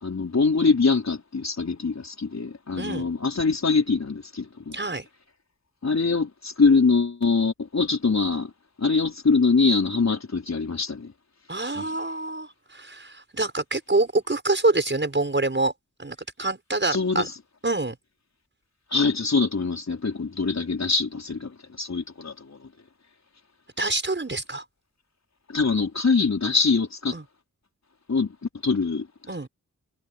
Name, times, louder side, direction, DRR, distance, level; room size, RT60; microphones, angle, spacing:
voice 1, 0.0-4.8 5.8-8.5 8.8-11.1 11.7-11.9 16.9-17.3 18.9-22.6 25.5-27.2 28.1-28.3 28.6-29.1, left 4 dB, 55° left, 4.5 m, -23 dB
voice 2, 2.8-3.1 4.7-5.1 11.5-15.7 16.0-17.3 17.6-18.0 23.8-24.6 27.1-27.2 29.3-29.5, right 2 dB, 35° right, 5.7 m, -26 dB
cardioid pair, 50°, 32 cm